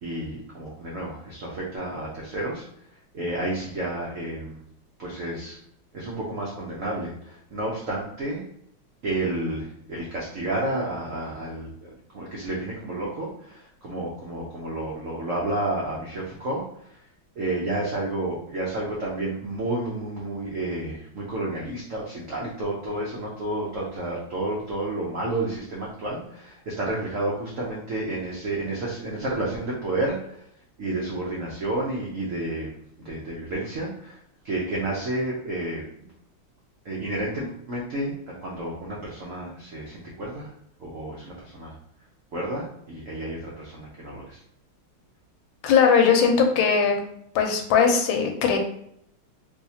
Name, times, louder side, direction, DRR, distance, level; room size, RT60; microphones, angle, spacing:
voice 1, 0.0-2.6 3.1-4.6 5.0-5.6 5.9-8.4 9.0-17.0 17.4-30.4 30.8-32.7 33.0-34.2 34.4-36.1 36.8-40.5 40.8-41.8 42.3-44.4, right 2 dB, 85° right, -4 dB, 0.7 m, -31 dB
voice 2, 45.6-47.0 47.3-48.6, left 6 dB, 75° left, 4 dB, 1.3 m, -19 dB
3.4 x 2.7 x 2.7 m, 0.72 s
omnidirectional pair, 2.3 m